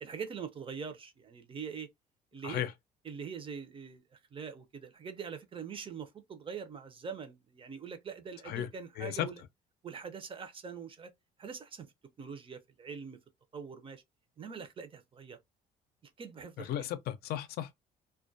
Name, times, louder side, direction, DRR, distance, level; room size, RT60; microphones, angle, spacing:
voice 1, 0.0-1.9 2.3-2.6 3.0-9.4 9.8-11.1 11.4-11.9 12.2-13.2 13.5-14.0 14.4-15.4 16.0-16.7, right 6 dB, 30° right, 0.5 m, -43 dB
voice 2, 9.0-9.3 16.6-17.7, left 11 dB, 70° left, 0.4 m, -35 dB
2.2 x 2.1 x 2.5 m
cardioid pair, 110°, 17 cm